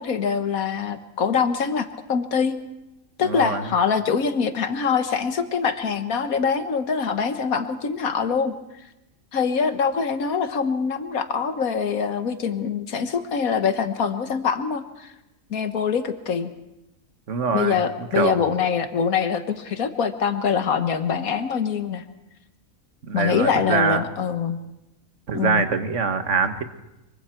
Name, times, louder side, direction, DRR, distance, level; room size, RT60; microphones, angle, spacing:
voice 1, 0.0-2.6 3.2-8.5 9.3-15.1 15.5-16.5 17.5-22.0 23.1-24.6 25.3-25.6, left 6 dB, 75° left, 9 dB, 1.7 m, -24 dB
voice 2, 3.2-3.7 17.3-18.4 23.1-24.0 25.3-26.6, right 5 dB, 60° right, 9 dB, 1.6 m, -24 dB
24.5 x 23.5 x 4.5 m, 0.94 s
omnidirectional pair, 1.5 m